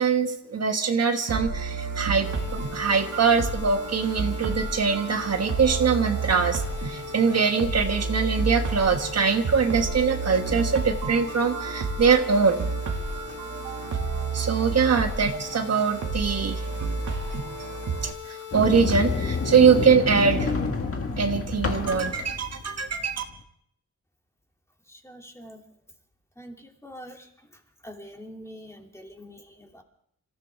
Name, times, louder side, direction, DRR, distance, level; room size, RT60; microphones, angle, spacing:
voice 1, 0.0-2.3 2.5-12.6 14.3-16.6 18.0-20.5 21.2-23.2, right 5 dB, 55° right, 5 dB, 1.3 m, -23 dB
sound 1, 1.3-18.1, right 4 dB, 80° right, 2.2 m, -31 dB
sound 2, 2.2-19.9, left 9 dB, 75° left, 4.3 m, -40 dB
Sliding door, 18.5-23.4, left 4 dB, 50° left, 1.8 m, -28 dB
voice 2, 24.9-25.6 26.4-27.3 27.8-29.8, equal, 10° left, 1 dB, 2.8 m, -44 dB
28.0 x 14.5 x 3.6 m, 0.68 s
wide cardioid pair, 100°, 30 cm